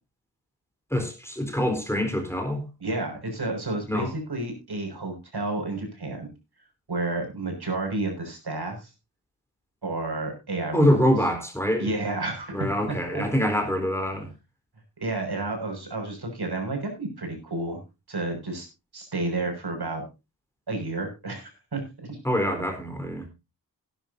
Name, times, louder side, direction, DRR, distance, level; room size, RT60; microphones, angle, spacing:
voice 1, 0.9-2.6 3.9-4.1 10.7-11.9 12.5-14.3 22.2-23.3, equal, 5° left, 4.0 m, -25 dB
voice 2, 2.8-6.3 6.9-8.9 9.8-10.9 11.8-13.2 15.0-17.8 18.1-18.7 18.9-20.0 20.7-22.2, right 2 dB, 60° right, 6.4 m, -31 dB
18.0 x 11.5 x 2.7 m
wide cardioid pair, 90°, 42 cm